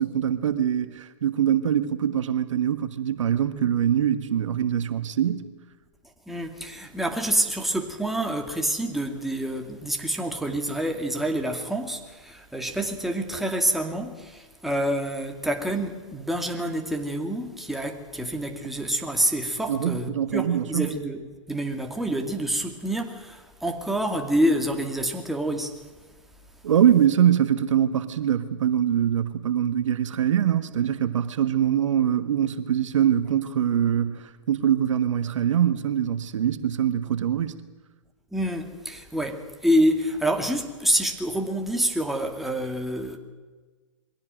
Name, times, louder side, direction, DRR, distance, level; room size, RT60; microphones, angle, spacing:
voice 1, 0.0-5.5 19.7-20.9 26.6-37.6, right 9 dB, 75° right, 1.5 m, -23 dB
voice 2, 6.3-21.2 21.5-25.8 38.3-43.2, right 1 dB, ahead, 2.3 m, -27 dB
22.5 x 16.5 x 9.2 m
hypercardioid pair, 130°, 16 cm